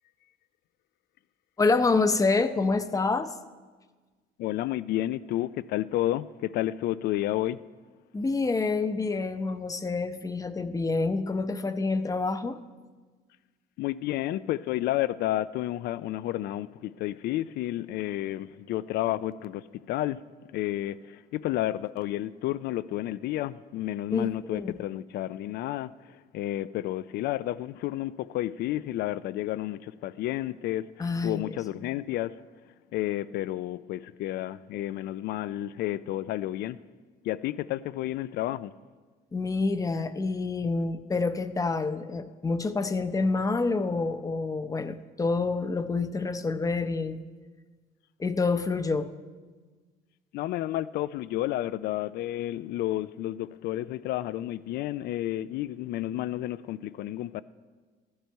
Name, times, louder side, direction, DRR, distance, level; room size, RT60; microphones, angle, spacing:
voice 1, 1.6-3.3 8.1-12.6 24.1-24.8 31.0-31.5 39.3-47.2 48.2-49.1, left 3 dB, 20° left, 0.7 m, -27 dB
voice 2, 4.4-7.6 13.8-20.2 20.5-32.4 32.9-36.8 37.2-38.7 50.3-57.4, left 14 dB, 70° left, 0.4 m, -31 dB
14.5 x 12.0 x 4.6 m
cardioid pair, 110°, 17 cm